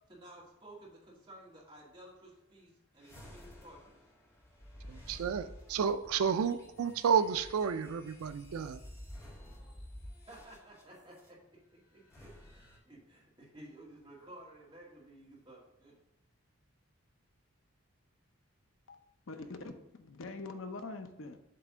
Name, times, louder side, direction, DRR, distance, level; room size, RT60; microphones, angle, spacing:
voice 1, 0.1-4.0 5.1-5.2 10.3-11.4 11.7-15.9, right 1 dB, 20° right, -5 dB, 2.1 m, -54 dB
sound 1, 3.0-11.3 12.0-12.8, equal, 15° left, 1.8 m, -52 dB
voice 2, 4.9-8.8, right 6 dB, 80° right, 11 dB, 0.4 m, -31 dB
voice 3, 19.3-21.4, left 3 dB, 60° left, 7 dB, 0.6 m, -44 dB
7.7 x 3.3 x 6.0 m, 0.92 s
head